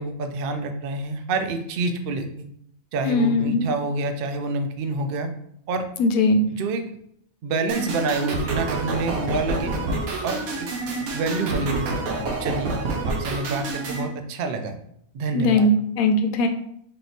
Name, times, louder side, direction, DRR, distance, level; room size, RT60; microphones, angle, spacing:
voice 1, 0.0-2.3 2.9-5.3 5.7-5.8 6.5-6.8 7.4-9.7 10.2-10.4 11.1-11.9 12.4-12.8 13.1-14.8 15.1-15.7, right 3 dB, 70° right, 6 dB, 0.5 m, -27 dB
voice 2, 3.1-3.7 6.0-6.4 15.3-16.5, left 2 dB, 85° left, 6 dB, 1.0 m, -20 dB
sound 1, 7.7-14.0, right 3 dB, 85° right, 1.2 m, -28 dB
3.5 x 2.9 x 3.9 m, 0.70 s
omnidirectional pair, 1.4 m